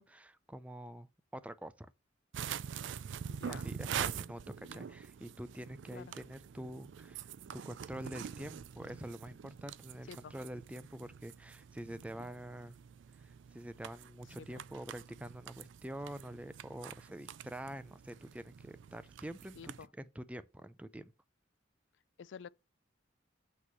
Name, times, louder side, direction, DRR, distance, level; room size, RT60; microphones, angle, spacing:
voice 1, 0.0-1.9 3.5-12.8 13.1-21.1, right 1 dB, 5° right, 0.4 m, -46 dB
sound 1, 2.3-19.9, right 8 dB, 70° right, 0.4 m, -45 dB
voice 2, 3.3-3.7 4.7-4.8 5.9-6.1 10.1-10.4 14.4-14.5 19.6-19.9 22.2-22.5, left 6 dB, 65° left, 0.4 m, -49 dB
8.3 x 3.1 x 5.9 m
head